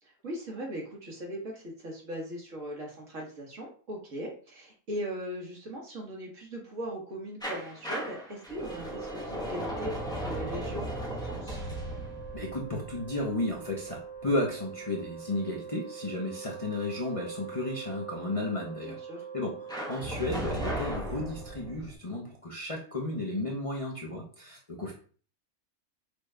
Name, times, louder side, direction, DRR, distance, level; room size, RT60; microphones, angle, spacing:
voice 1, 0.0-11.6 18.8-19.3, equal, 60° right, -2 dB, 1.8 m, -39 dB
sound 1, 7.4-14.2 19.7-21.9, equal, 5° left, 1.0 m, -37 dB
Wind instrument woodwind instrument, 8.5-21.9, right 7 dB, 45° right, 0.3 m, -44 dB
voice 2, 12.3-19.0 19.3-24.9, left 2 dB, 30° left, -3 dB, 0.8 m, -33 dB
6.1 x 2.5 x 3.3 m, 0.41 s
omnidirectional pair, 1.5 m